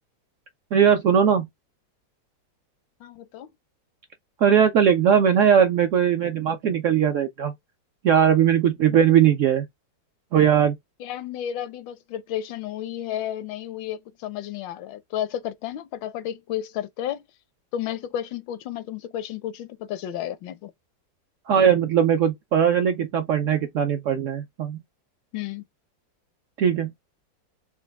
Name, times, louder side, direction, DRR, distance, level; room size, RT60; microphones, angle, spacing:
voice 1, 0.7-1.5 4.4-7.5 8.0-9.6 10.3-10.7 21.5-24.8 26.6-26.9, right 8 dB, 80° right, 0.7 m, -19 dB
voice 2, 3.0-3.5 8.9-9.0 11.0-17.2 17.7-20.7 25.3-25.6, left 11 dB, 80° left, 1.3 m, -32 dB
4.5 x 2.2 x 3.4 m
omnidirectional pair, 2.0 m